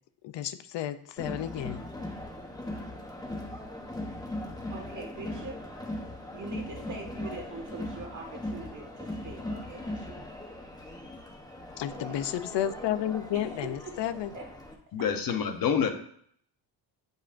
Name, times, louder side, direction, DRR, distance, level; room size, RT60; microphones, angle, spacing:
voice 1, 0.2-1.8 11.8-14.3, left 11 dB, 75° left, 12 dB, 0.6 m, -32 dB
Crowd, 1.2-14.7, left 1 dB, 10° left, 0.8 m, -39 dB
voice 2, 4.7-5.6 6.3-10.3 11.9-12.3 13.3-13.4 13.8-14.0 14.3-14.5, right 3 dB, 45° right, 0 dB, 1.7 m, -43 dB
voice 3, 14.9-15.9, left 7 dB, 50° left, 6 dB, 0.8 m, -27 dB
8.2 x 5.4 x 2.5 m, 0.64 s
wide cardioid pair, 160°, 43 cm